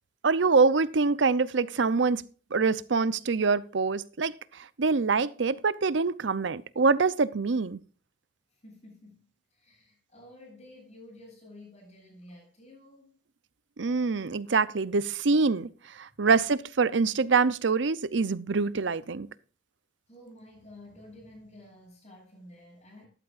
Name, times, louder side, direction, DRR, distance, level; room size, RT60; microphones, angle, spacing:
voice 1, 0.2-2.2 2.5-7.8 13.8-19.3, right 4 dB, 75° right, 0.7 m, -25 dB
voice 2, 8.5-13.2 20.1-23.1, left 1 dB, 35° left, 7.4 m, -51 dB
13.5 x 12.0 x 2.5 m
head